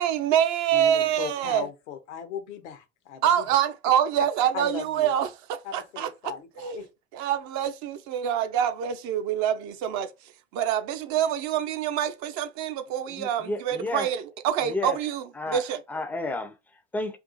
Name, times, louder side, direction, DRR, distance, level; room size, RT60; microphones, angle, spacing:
voice 1, 0.0-1.7 3.2-6.1 6.6-6.8 7.1-10.1 10.5-14.2 14.4-15.2 15.5-15.8, right 10 dB, 50° right, 0.6 m, -26 dB
voice 2, 0.7-3.6 4.2-4.3 4.5-5.1 5.6-6.8, left 8 dB, 70° left, 0.7 m, -37 dB
voice 3, 13.0-14.1 14.6-15.0 15.3-17.2, left 2 dB, 5° left, 0.4 m, -32 dB
2.5 x 2.4 x 3.8 m
hypercardioid pair, 70°, 36 cm